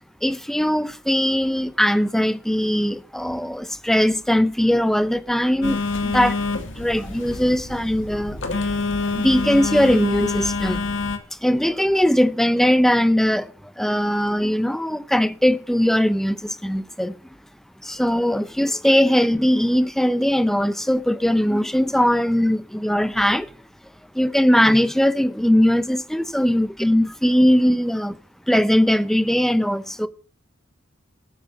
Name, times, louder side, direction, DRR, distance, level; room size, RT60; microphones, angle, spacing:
voice 1, 0.2-6.3 6.8-8.4 9.1-10.8 11.4-13.5 13.8-17.1 17.9-23.5 24.2-28.1 28.5-30.1, equal, ahead, 0.8 m, -20 dB
Telephone, 5.6-11.2, left 3 dB, 70° left, 2.2 m, -26 dB
12.5 x 9.1 x 7.1 m
head